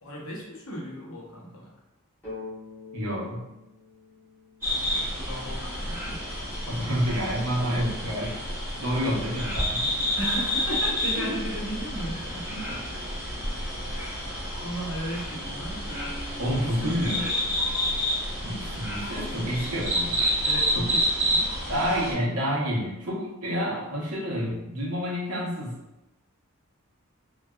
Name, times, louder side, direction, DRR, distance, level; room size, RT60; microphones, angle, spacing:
voice 1, 0.0-1.7 5.2-6.3 10.1-12.8 13.9-14.2 14.6-16.2 16.6-17.5 20.4-21.5, equal, 70° left, -3 dB, 0.8 m, -36 dB
sound 1, 2.2-5.9, left 3 dB, 10° left, 1.2 m, -45 dB
voice 2, 2.9-3.4 6.7-8.4 8.8-9.9 11.2-11.4 12.5-12.8 16.4-17.3 18.4-20.3 20.7-20.9 21.7-25.8, equal, 90° right, -4 dB, 0.8 m, -29 dB
sound 2, 4.6-22.1, equal, 10° right, 0.7 m, -29 dB
3.2 x 2.3 x 2.3 m, 0.98 s
head